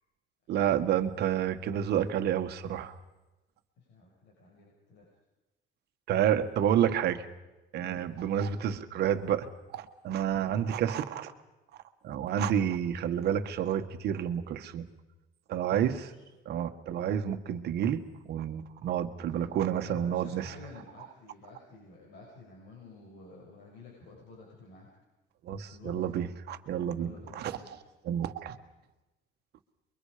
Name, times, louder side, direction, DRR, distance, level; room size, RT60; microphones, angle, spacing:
voice 1, 0.5-3.0 6.1-7.2 7.7-11.3 12.0-14.9 15.5-16.0 16.5-18.0 18.2-20.5 25.4-27.6 28.0-28.6, right 9 dB, 60° right, 8 dB, 1.6 m, -29 dB
voice 2, 3.8-5.1 7.8-8.2 10.3-10.6 15.7-16.2 19.8-24.9 25.7-26.3 26.9-28.1, left 3 dB, 70° left, -3 dB, 6.7 m, -51 dB
29.0 x 23.0 x 5.1 m, 1.1 s
cardioid pair, 180°, 19 cm